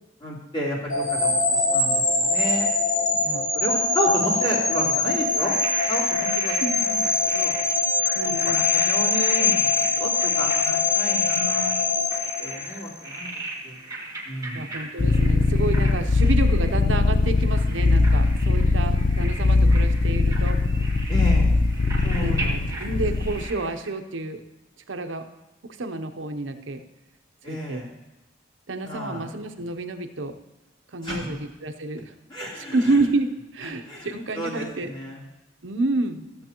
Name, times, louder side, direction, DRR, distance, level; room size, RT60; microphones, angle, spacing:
voice 1, 0.2-2.7 3.5-5.5 5.9-6.5 6.8-7.0 7.3-7.5 8.2-11.8 12.4-13.3 13.6-13.7 14.3-14.6 21.1-21.5 22.0-22.6 27.4-27.8 28.8-29.2 31.0-31.3 32.3-32.8 33.9-35.2, equal, 25° left, -7 dB, 3.4 m, -31 dB
sound 1, 0.9-13.0, left 4 dB, 80° left, 3.7 m, -23 dB
sound 2, 5.4-23.9, right 2 dB, 15° right, 1.7 m, -37 dB
voice 2, 6.5-6.9 8.1-8.7 14.5-20.6 22.2-24.4 24.9-25.3 25.6-26.8 27.5-27.8 28.7-30.4 30.9-32.1 32.5-34.9 35.6-36.3, right 2 dB, 85° right, 7 dB, 0.8 m, -29 dB
sound 3, 15.0-23.5, left 3 dB, 45° left, 0.5 m, -20 dB
14.5 x 7.7 x 3.0 m, 1.0 s
head